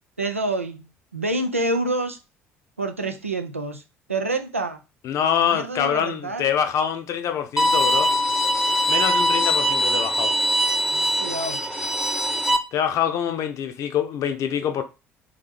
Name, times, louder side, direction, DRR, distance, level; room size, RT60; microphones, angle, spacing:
voice 1, 0.2-2.2 2.8-3.8 4.1-4.8 5.2-6.5 10.9-11.6, right 2 dB, 90° right, 0.4 m, -27 dB
voice 2, 5.0-8.1 8.9-10.3 12.7-14.8, left 8 dB, 50° left, 0.6 m, -25 dB
Bowed string instrument, 7.6-12.6, equal, 5° right, 0.5 m, -22 dB
3.5 x 2.8 x 3.3 m
figure-of-eight pair, 55°, 7 cm